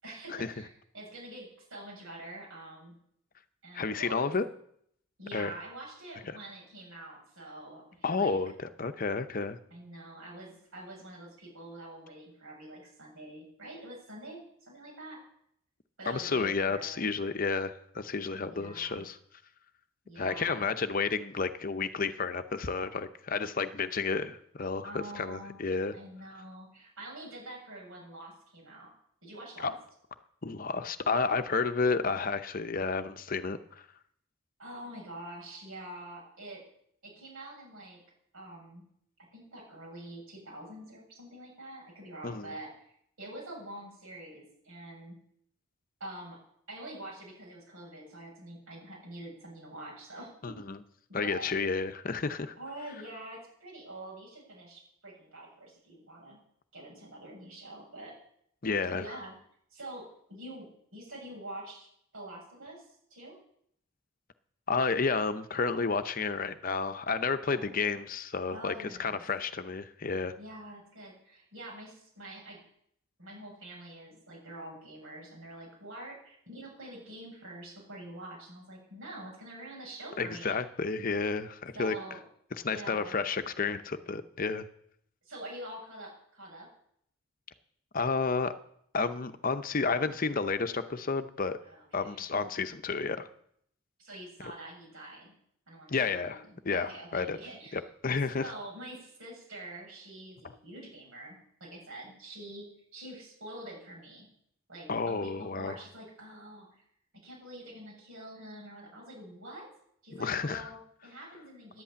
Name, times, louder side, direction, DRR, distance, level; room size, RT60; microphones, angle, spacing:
voice 1, 0.0-2.9 3.6-4.3 5.2-8.4 9.7-15.2 16.0-17.0 18.4-19.1 20.0-20.7 24.8-25.6 25.9-28.9 29.2-29.7 34.6-36.6 37.0-38.0 38.3-38.8 39.3-42.7 43.2-45.1 46.0-46.4 46.7-50.6 51.1-51.5 52.6-56.4 56.7-58.1 58.9-59.3 59.7-61.9 62.1-63.4 67.5-68.0 68.5-69.2 70.4-72.6 73.2-80.6 81.7-82.2 82.7-83.2 85.3-86.7 91.6-92.2 94.0-95.3 95.7-97.8 98.4-102.7 102.9-104.3 104.7-106.7 107.2-109.7 110.0-111.8, right 1 dB, 85° right, -2 dB, 7.3 m, -46 dB
voice 2, 3.7-4.4 5.3-5.5 6.3-6.4 8.0-9.6 16.1-19.2 20.2-25.9 29.6-29.7 30.4-33.6 42.2-42.5 50.4-50.8 51.1-52.5 58.6-59.0 64.7-70.3 80.2-81.9 82.6-84.7 87.9-88.5 88.9-91.6 91.9-93.3 95.9-97.4 97.7-98.5 104.9-105.8 110.2-110.7, left 4 dB, 45° left, 10 dB, 0.7 m, -31 dB
11.0 x 8.4 x 8.6 m, 0.69 s
head